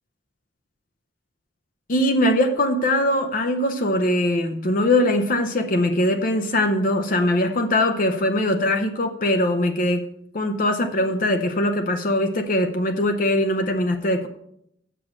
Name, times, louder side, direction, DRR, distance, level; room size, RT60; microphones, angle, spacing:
voice 1, 1.9-10.1 10.3-14.3, left 1 dB, 45° left, 6 dB, 0.6 m, -21 dB
7.4 x 6.9 x 6.0 m, 0.75 s
head